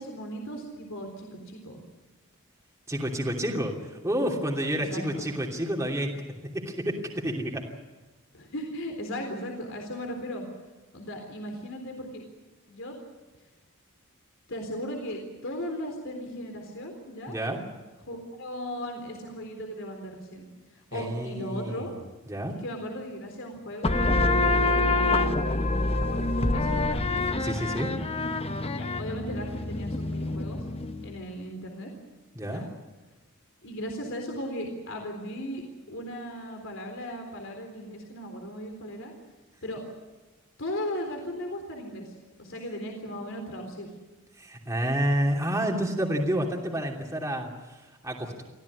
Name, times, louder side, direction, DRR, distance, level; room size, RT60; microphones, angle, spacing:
voice 1, 0.0-1.8 4.8-5.3 8.3-10.4 10.9-12.2 12.7-13.0 14.5-17.4 18.0-21.9 22.6-27.2 28.8-30.7 31.0-31.9 32.4-32.7 33.6-39.1 39.6-39.8 40.6-43.9, equal, 65° left, 3 dB, 3.8 m, -37 dB
voice 2, 2.9-6.2 6.5-7.7 17.3-17.6 20.9-21.9 22.3-22.5 27.4-27.9 32.3-32.6 44.4-48.4, equal, 15° right, -1 dB, 2.9 m, -29 dB
sound 1, 23.8-31.1, left 2 dB, 30° left, 1.0 m, -26 dB
25.0 x 16.0 x 9.7 m, 1.2 s
head